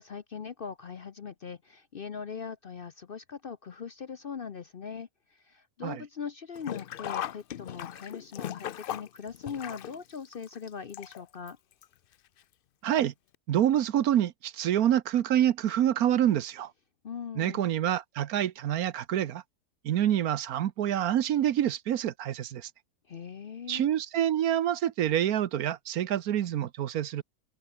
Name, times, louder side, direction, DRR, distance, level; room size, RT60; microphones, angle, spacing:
voice 1, 0.0-11.6 17.0-17.7 23.1-23.9, left 6 dB, 45° left, 0.8 m, -40 dB
Sink (filling or washing), 6.5-11.5 11.8-11.9 12.9-13.0 13.3-13.4, left 10 dB, 80° left, 0.5 m, -38 dB
voice 2, 12.8-13.1 13.5-16.7 17.4-19.4 19.8-22.7 23.7-27.2, right 11 dB, 75° right, 1.3 m, -27 dB
open air
omnidirectional pair, 1.6 m